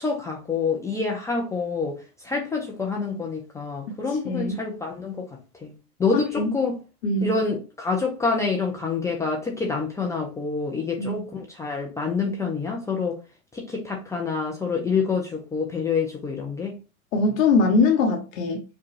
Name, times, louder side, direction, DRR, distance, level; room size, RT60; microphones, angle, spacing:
voice 1, 0.0-5.3 5.6-5.7 6.0-6.8 7.2-13.2 13.5-16.8, left 4 dB, 5° left, 0.4 m, -27 dB
voice 2, 4.2-4.6 6.1-6.5 7.0-7.3 11.0-11.2 17.1-18.6, left 3 dB, 60° left, 1.0 m, -22 dB
4.9 x 2.2 x 3.1 m
hypercardioid pair, 110°, 44 cm